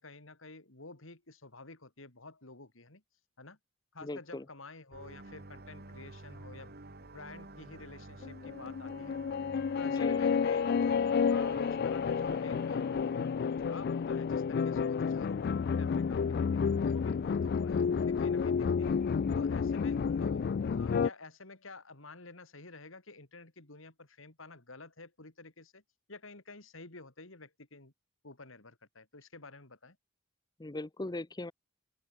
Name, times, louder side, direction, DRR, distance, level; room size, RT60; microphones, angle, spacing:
voice 1, 0.0-3.0 3.4-3.6 3.9-9.2 9.8-11.0 11.3-16.3 16.5-16.6 16.9-19.0 19.3-25.8 26.1-27.9 28.2-30.0, left 3 dB, 70° left, 3.2 m, -50 dB
voice 2, 4.0-4.4 10.0-10.2 30.6-31.5, left 2 dB, 20° left, 0.7 m, -39 dB
sound 1, 4.9-13.9, right 2 dB, 50° right, 1.6 m, -50 dB
sound 2, 8.2-21.1, left 6 dB, 50° left, 0.3 m, -30 dB
head